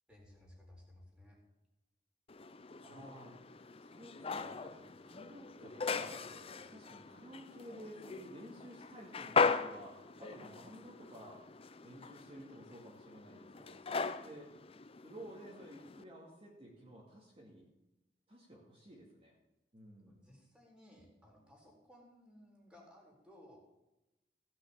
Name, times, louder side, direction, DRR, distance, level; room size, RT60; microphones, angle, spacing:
voice 1, 0.1-1.4 20.1-23.6, left 1 dB, 5° right, -2 dB, 4.1 m, -59 dB
sound 1, 2.3-16.0, left 4 dB, 35° left, 0.5 m, -39 dB
voice 2, 2.8-3.4 3.8-11.4 11.8-14.8 15.0-17.7 18.3-19.3 19.7-20.2, right 1 dB, 30° right, -4 dB, 2.3 m, -53 dB
16.0 x 6.3 x 7.1 m, 0.96 s
head